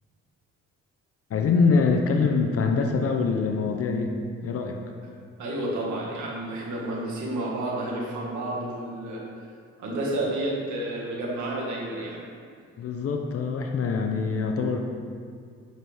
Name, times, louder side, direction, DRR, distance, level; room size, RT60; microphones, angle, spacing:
voice 1, 1.3-4.1 4.4-4.8 12.8-14.8, left 4 dB, 50° left, 3 dB, 0.6 m, -24 dB
voice 2, 5.4-9.2 9.8-12.2, right 1 dB, 75° right, -4 dB, 1.7 m, -30 dB
6.6 x 6.2 x 3.4 m, 2.2 s
cardioid pair, 90°, 30 cm